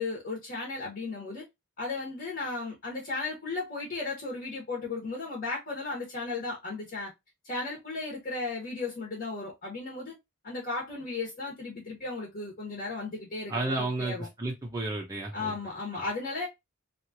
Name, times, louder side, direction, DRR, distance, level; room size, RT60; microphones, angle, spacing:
voice 1, 0.0-1.4 1.8-7.1 7.4-10.1 10.4-14.3 15.3-16.5, left 3 dB, 45° left, 1.2 m, -35 dB
voice 2, 13.5-15.5 15.9-16.0, right 2 dB, 15° right, 0.6 m, -32 dB
3.0 x 2.4 x 2.7 m
head